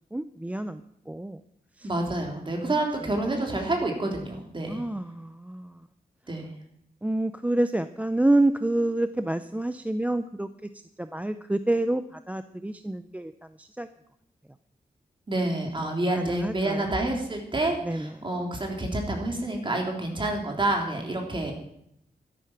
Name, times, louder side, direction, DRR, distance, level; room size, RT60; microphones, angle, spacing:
voice 1, 0.1-1.4 1.8-1.9 4.7-5.8 7.0-10.5 11.0-13.3 13.6-13.9 15.8-16.9 17.8-18.1, right 1 dB, 10° right, 11 dB, 0.5 m, -28 dB
voice 2, 1.8-4.8 6.3-6.5 15.3-21.5, right 2 dB, 30° right, 2 dB, 3.4 m, -28 dB
12.5 x 11.5 x 5.9 m, 0.73 s
wide cardioid pair, 100°, 16 cm